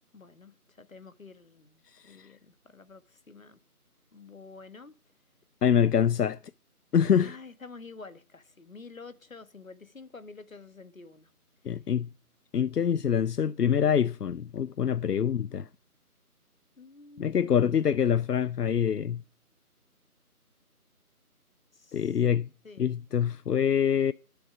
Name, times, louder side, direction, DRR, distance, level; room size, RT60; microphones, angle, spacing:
voice 1, 0.1-3.6 4.1-4.9 7.1-11.3 16.8-17.9 21.7-22.1 22.6-22.9, left 4 dB, 60° left, 1.5 m, -49 dB
voice 2, 1.9-2.3 5.6-6.4 6.9-7.4 11.6-12.1 12.5-15.7 17.2-19.2 21.9-22.5 22.8-24.1, left 8 dB, 80° left, 0.6 m, -25 dB
20.0 x 6.9 x 4.8 m
figure-of-eight pair, 170°, 46 cm